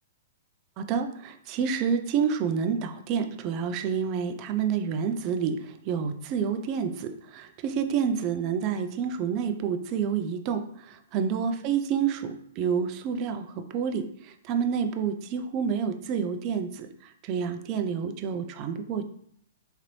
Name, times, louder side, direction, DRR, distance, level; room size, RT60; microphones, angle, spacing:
voice 1, 0.8-5.6 5.9-10.6 11.1-13.5 13.7-14.0 14.5-16.9 17.3-19.0, right 7 dB, 25° right, 7 dB, 0.3 m, -28 dB
3.8 x 2.9 x 3.1 m, 0.68 s
hypercardioid pair, 165°, 0 cm